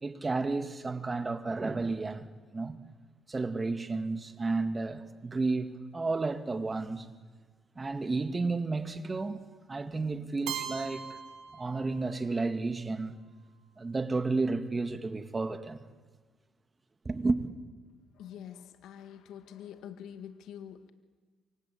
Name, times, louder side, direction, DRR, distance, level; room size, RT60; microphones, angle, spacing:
voice 1, 0.0-2.3 2.5-2.8 3.3-7.1 7.8-9.4 9.7-11.2 11.5-13.2 13.8-15.8 17.1-17.5, right 3 dB, 25° right, 2.1 m, -32 dB
Keyboard (musical), 10.5-12.4, right 8 dB, 80° right, 2.0 m, -40 dB
voice 2, 18.2-20.9, left 9 dB, 80° left, 2.0 m, -46 dB
27.0 x 24.5 x 8.7 m
cardioid pair, 90°, 0 cm